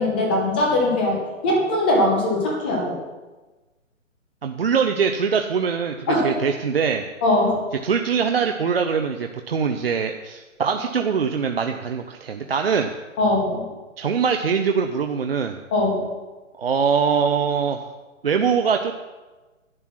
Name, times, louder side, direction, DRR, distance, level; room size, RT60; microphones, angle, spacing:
voice 1, 0.0-3.0 6.1-6.3 7.2-7.6 13.2-13.7 15.7-16.1, left 1 dB, 10° left, -1 dB, 0.8 m, -21 dB
voice 2, 4.4-7.0 7.8-12.9 14.0-15.6 16.6-17.8 18.2-19.0, right 6 dB, 50° right, 5 dB, 0.7 m, -22 dB
11.0 x 9.1 x 6.0 m, 1.2 s
hypercardioid pair, 170°, 39 cm